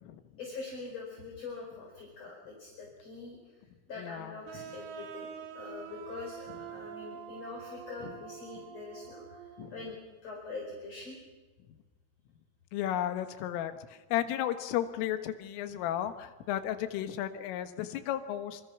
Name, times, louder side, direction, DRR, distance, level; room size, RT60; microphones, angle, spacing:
voice 1, 0.4-3.4 3.9-9.4 9.7-11.1, left 3 dB, 30° left, -1 dB, 5.7 m, -44 dB
voice 2, 4.0-4.7 8.0-8.1 9.6-9.7 12.7-13.7 14.1-18.6, left 11 dB, 75° left, 9 dB, 3.9 m, -34 dB
sound 1, 4.5-10.0, right 7 dB, 70° right, 4.2 m, -46 dB
28.0 x 26.5 x 6.1 m, 1.3 s
omnidirectional pair, 6.0 m